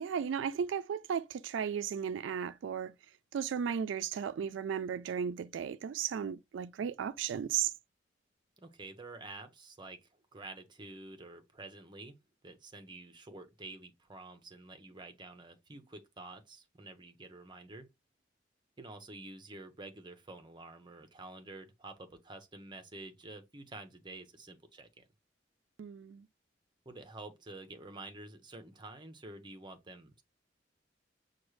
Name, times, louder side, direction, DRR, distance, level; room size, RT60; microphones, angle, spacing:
voice 1, 0.0-2.9 3.3-7.7 25.8-26.3, right 7 dB, 85° right, 0.3 m, -35 dB
voice 2, 8.6-12.2 12.4-17.9 18.8-25.1 26.9-30.2, right 2 dB, 25° right, 0.7 m, -49 dB
6.0 x 2.3 x 3.1 m
head